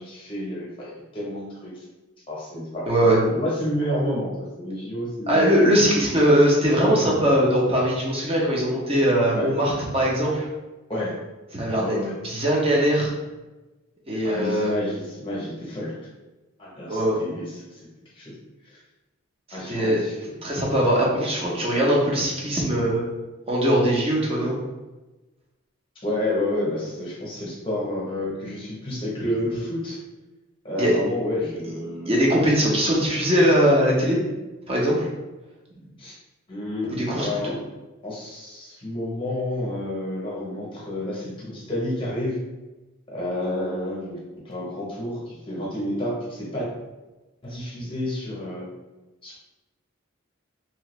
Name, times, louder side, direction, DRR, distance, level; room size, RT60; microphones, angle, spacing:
voice 1, 0.0-1.8 2.3-2.9 3.2-5.7 9.3-9.5 10.9-11.1 11.7-12.1 14.2-15.9 16.6-17.9 18.1-18.3 18.7-18.8 19.5-20.2 26.0-30.0 30.6-32.1 36.0-36.2 36.5-37.6 38.0-42.4 43.1-44.2 44.4-46.7 47.4-48.7 49.2-49.3, left 1 dB, 25° left, -6 dB, 0.8 m, -30 dB
voice 2, 2.9-3.2 5.3-10.5 11.5-12.0 12.2-13.1 14.1-14.7 16.9-17.2 19.7-20.0 20.4-23.0 23.5-24.6 30.8-30.9 32.1-34.2 34.7-35.1 37.0-37.5, equal, 25° right, -3 dB, 0.6 m, -21 dB
2.8 x 2.4 x 3.1 m, 1.1 s
head